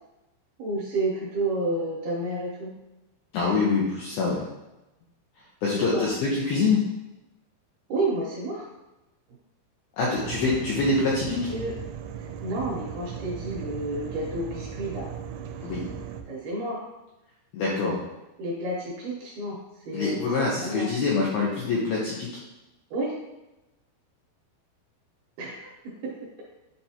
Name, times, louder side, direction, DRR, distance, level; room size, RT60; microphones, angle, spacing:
voice 1, 0.6-2.8 5.7-6.1 7.9-8.7 11.5-11.7 12.2-15.1 16.2-16.8 18.4-20.9 22.9-23.2 25.4-26.4, right 2 dB, 70° right, -3 dB, 2.5 m, -31 dB
voice 2, 3.3-4.4 5.6-6.8 10.0-11.5 15.6-15.9 17.5-18.0 19.9-22.3, left 4 dB, 80° left, -4 dB, 2.2 m, -25 dB
sound 1, 10.2-16.2, right 8 dB, 90° right, 2.9 m, -37 dB
9.8 x 3.4 x 2.8 m, 0.99 s
omnidirectional pair, 5.3 m